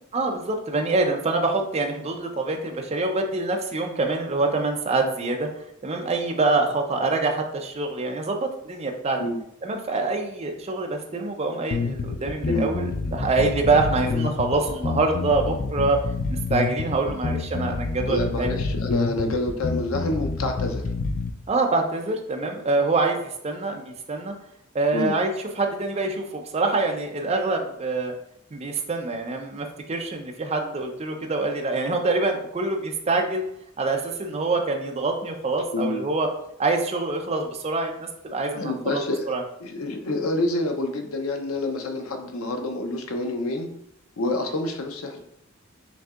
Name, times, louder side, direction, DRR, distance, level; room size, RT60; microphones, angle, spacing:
voice 1, 0.1-5.5 5.8-9.2 9.6-16.0 16.3-18.5 21.5-24.3 24.7-28.1 28.5-33.4 33.8-36.3 36.6-39.4, right 3 dB, 30° right, 3 dB, 0.5 m, -25 dB
sound 1, 11.7-21.3, left 4 dB, 40° left, 0.3 m, -28 dB
voice 2, 18.1-20.8 24.9-25.1 35.7-36.0 38.5-39.3 39.6-43.7 44.2-45.2, left 1 dB, 90° left, 4 dB, 0.6 m, -27 dB
6.0 x 2.7 x 2.4 m, 0.77 s
head